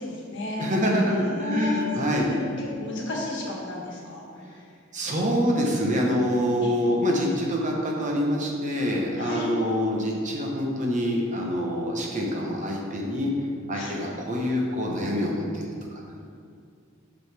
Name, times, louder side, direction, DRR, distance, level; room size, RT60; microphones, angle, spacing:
voice 1, 0.0-4.7 6.6-6.7 9.1-9.4 13.7-14.0, left 2 dB, 60° left, -3 dB, 1.4 m, -33 dB
voice 2, 0.6-2.3 4.4-4.5 4.9-13.3 13.7-15.7, equal, 35° right, -1 dB, 0.9 m, -26 dB
7.6 x 6.4 x 3.4 m, 2.3 s
head